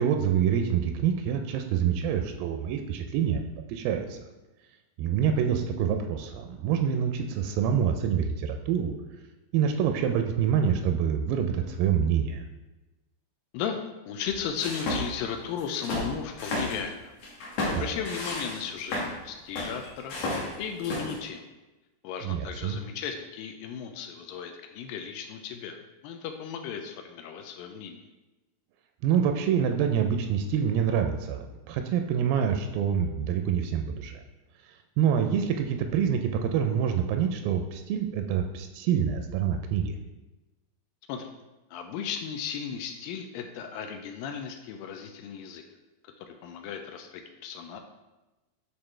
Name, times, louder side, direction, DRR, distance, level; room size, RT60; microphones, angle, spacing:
voice 1, 0.0-3.4 3.7-4.2 5.0-8.9 9.5-12.4 17.7-17.9 22.2-22.8 29.0-34.2 35.0-40.0, right 8 dB, 85° right, 5 dB, 2.3 m, -26 dB
voice 2, 14.1-17.1 17.7-21.4 22.0-28.0 41.1-41.3 41.7-45.6 46.0-47.8, left 7 dB, 85° left, 5 dB, 2.2 m, -36 dB
sound 1, 14.3-15.3 15.6-16.8 17.2-19.2 19.5-21.2, left 2 dB, 65° left, 1.6 m, -33 dB
8.0 x 3.8 x 3.2 m, 1.1 s
omnidirectional pair, 4.1 m